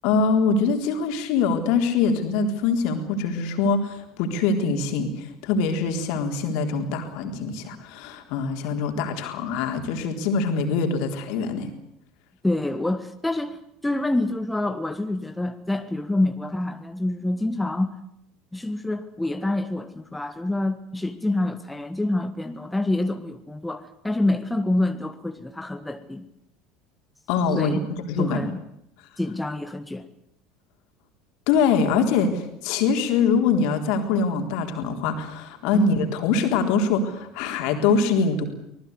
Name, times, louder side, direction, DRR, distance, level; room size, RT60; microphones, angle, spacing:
voice 1, 0.0-11.7 27.3-28.4 31.5-38.5, left 5 dB, 60° left, 5 dB, 3.8 m, -23 dB
voice 2, 12.4-17.9 18.5-26.3 27.6-27.9 28.2-28.6 29.2-30.1 35.7-35.8, left 2 dB, 10° left, 8 dB, 1.5 m, -27 dB
25.0 x 19.5 x 8.2 m, 0.77 s
figure-of-eight pair, 70°, 0 cm